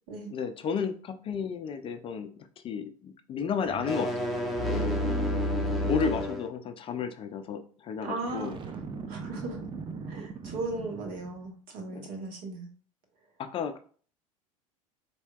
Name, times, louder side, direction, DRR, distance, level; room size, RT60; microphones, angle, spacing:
voice 1, 0.3-4.1 4.7-5.0 5.8-8.6 11.9-12.1 13.4-13.8, left 6 dB, 30° left, 8 dB, 0.4 m, -33 dB
sound 1, 3.7-6.5, left 1 dB, ahead, 0.8 m, -29 dB
voice 2, 4.7-5.5 8.0-8.5 9.1-9.6 10.1-12.7, right 3 dB, 60° right, 2 dB, 1.2 m, -37 dB
Boom, 8.3-11.5, right 5 dB, 25° right, 0.5 m, -40 dB
4.3 x 2.7 x 2.3 m, 0.42 s
hypercardioid pair, 80°, 18 cm